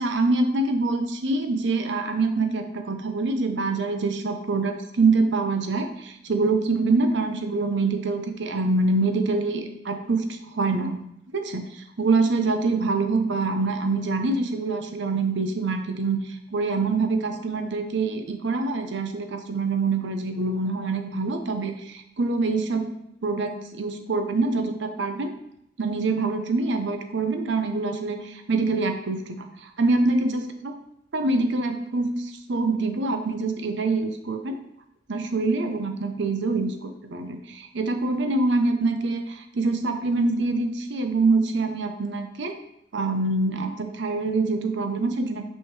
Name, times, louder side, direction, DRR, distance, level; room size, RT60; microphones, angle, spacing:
voice 1, 0.0-11.0 11.3-22.9 23.2-25.3 25.8-30.7 31.1-34.6 35.1-42.5 42.9-45.4, right 3 dB, 65° right, 6 dB, 0.7 m, -25 dB
5.7 x 5.6 x 3.1 m, 0.78 s
head